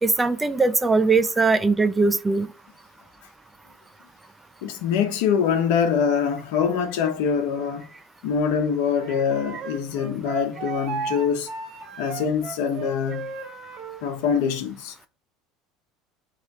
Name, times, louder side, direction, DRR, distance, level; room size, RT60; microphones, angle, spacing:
voice 1, 0.0-2.5, right 3 dB, 10° right, 0.3 m, -20 dB
voice 2, 4.6-7.9 8.2-11.5 12.0-13.3 14.0-14.9, left 7 dB, 80° left, 1.0 m, -24 dB
Wind instrument woodwind instrument, 9.0-14.0, right 5 dB, 40° right, 0.8 m, -35 dB
4.1 x 3.3 x 3.6 m
cardioid pair, 150°, 0 cm